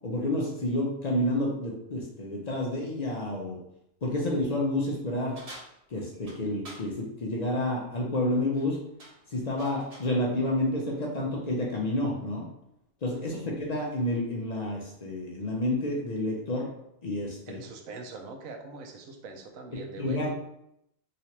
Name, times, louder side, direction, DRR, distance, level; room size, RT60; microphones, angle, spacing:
voice 1, 0.0-3.6 4.0-5.3 5.9-8.8 9.3-12.5 13.0-16.7 17.0-17.6 20.0-20.3, left 1 dB, 50° left, -2 dB, 0.5 m, -29 dB
sound 1, 5.4-6.9 8.4-8.7 9.0-10.2, right 1 dB, 40° right, 0.6 m, -48 dB
voice 2, 13.1-13.5 17.5-20.3, right 3 dB, 80° right, 3 dB, 1.0 m, -42 dB
3.2 x 3.0 x 2.9 m, 0.78 s
omnidirectional pair, 1.4 m